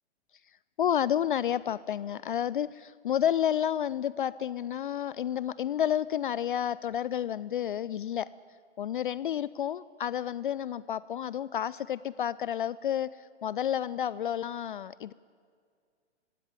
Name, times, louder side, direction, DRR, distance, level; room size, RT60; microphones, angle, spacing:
voice 1, 0.8-8.3 8.8-15.1, left 10 dB, 45° left, 19 dB, 0.4 m, -30 dB
19.5 x 16.0 x 9.7 m, 2.1 s
figure-of-eight pair, 120°, 35 cm